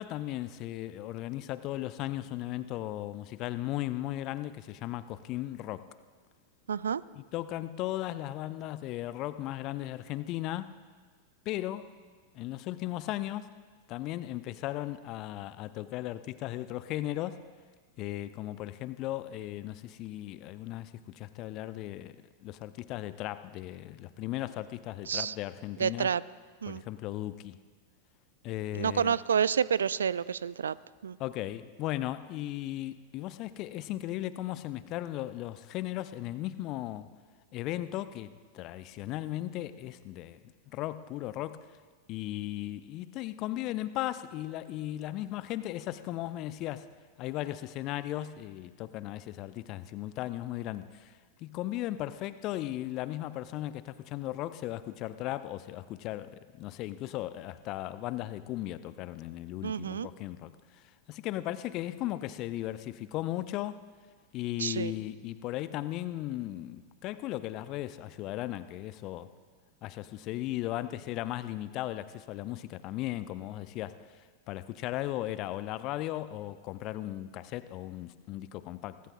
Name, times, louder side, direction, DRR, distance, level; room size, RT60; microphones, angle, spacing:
voice 1, 0.0-5.9 7.1-10.7 11.5-11.9 12.3-13.5 13.9-17.4 18.0-22.2 22.4-26.1 26.7-27.6 28.4-29.2 31.2-37.1 37.5-40.4 40.7-41.7 42.1-46.9 47.2-63.8 64.3-69.3 69.8-79.0, left 14 dB, 40° left, 14 dB, 0.6 m, -36 dB
voice 2, 6.7-7.0 25.1-25.3 25.8-26.2 26.6-26.8 28.7-30.8 31.0-31.2 59.6-60.1 64.6-64.9, right 7 dB, 70° right, 20 dB, 0.3 m, -29 dB
23.5 x 18.0 x 2.4 m, 1.5 s
figure-of-eight pair, 90°, 0 cm